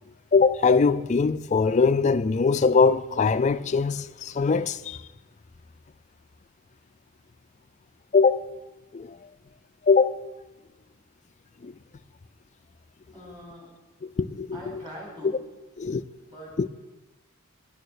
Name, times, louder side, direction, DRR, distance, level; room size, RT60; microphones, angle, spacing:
voice 1, 0.3-5.0 8.1-8.5 8.9-9.2 9.9-10.2 11.6-11.7 14.0-14.8 15.2-15.3 15.8-16.0 16.6-16.7, left 4 dB, 35° left, 0.3 m, -22 dB
voice 2, 13.1-13.7 14.5-15.3 16.2-16.5, equal, 20° right, 4.2 m, -42 dB
11.5 x 9.1 x 6.5 m
head